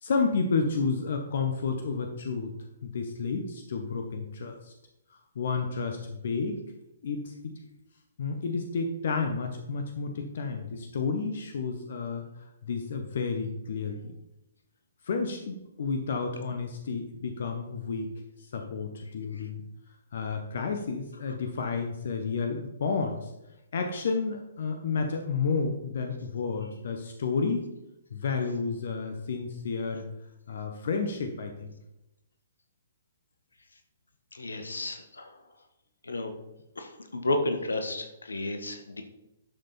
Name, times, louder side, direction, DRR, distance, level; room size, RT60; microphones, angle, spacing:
voice 1, 0.0-2.5 2.8-4.7 5.1-6.6 7.0-7.3 8.2-14.1 15.0-18.1 18.4-19.6 20.1-23.3 23.7-27.7 28.1-30.1 30.5-31.7, left 4 dB, 55° left, 5 dB, 1.2 m, -31 dB
voice 2, 34.3-35.3 36.0-36.3 36.7-39.0, left 2 dB, 75° left, 6 dB, 1.5 m, -32 dB
11.5 x 6.4 x 4.4 m, 0.90 s
figure-of-eight pair, 125°, 0 cm